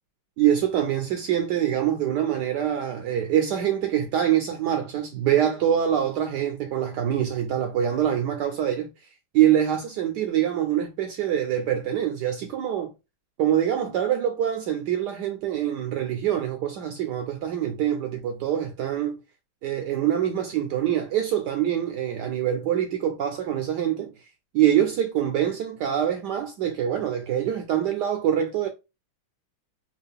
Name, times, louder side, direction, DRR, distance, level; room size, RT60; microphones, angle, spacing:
voice 1, 0.4-8.9 9.3-12.9 13.4-19.2 19.6-24.1 24.5-28.7, right 10 dB, 75° right, 1.0 m, -24 dB
3.7 x 2.3 x 3.4 m
omnidirectional pair, 2.2 m